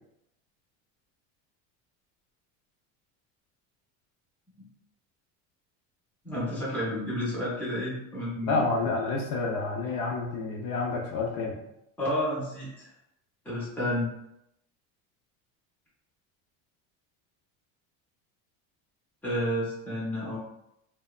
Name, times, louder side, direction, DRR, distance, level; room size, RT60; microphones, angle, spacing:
voice 1, 6.2-8.6 12.0-12.9 13.4-14.1 19.2-20.4, left 1 dB, 5° left, -8 dB, 0.6 m, -30 dB
voice 2, 8.5-11.6, left 3 dB, 55° left, 0 dB, 0.4 m, -29 dB
3.0 x 2.0 x 2.3 m, 0.81 s
cardioid pair, 170°, 40 cm